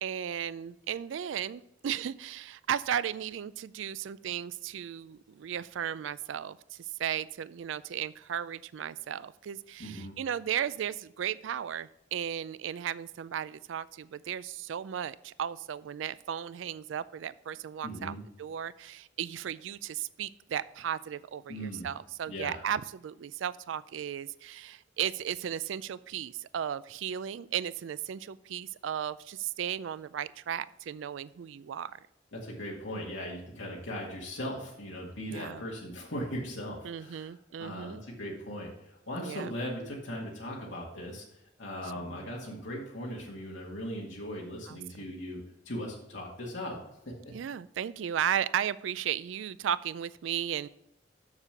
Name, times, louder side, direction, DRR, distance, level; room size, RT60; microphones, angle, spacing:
voice 1, 0.0-6.6 7.0-32.0 35.3-35.6 36.8-38.0 39.2-39.5 42.0-42.1 44.7-45.1 47.3-50.7, right 9 dB, 80° right, 17 dB, 0.4 m, -35 dB
voice 2, 9.8-10.2 17.8-18.2 21.5-21.9 22.3-22.6 32.3-45.4 45.7-46.8 47.1-47.3, equal, 80° left, -3 dB, 2.0 m, -39 dB
7.2 x 6.7 x 5.8 m, 0.83 s
head